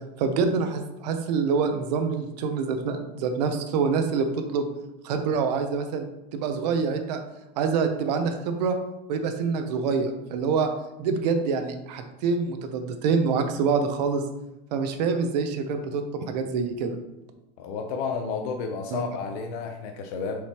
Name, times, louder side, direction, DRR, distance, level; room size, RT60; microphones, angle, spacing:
voice 1, 0.2-4.3 4.5-4.7 5.0-6.0 6.3-7.2 7.6-8.8 9.1-10.7 11.0-14.2 14.7-17.0 18.9-19.0, right 5 dB, 80° right, 6 dB, 0.9 m, -26 dB
voice 2, 17.6-20.4, left 5 dB, 70° left, 4 dB, 0.8 m, -31 dB
6.9 x 4.9 x 3.0 m, 0.95 s
supercardioid pair, 165°, 21 cm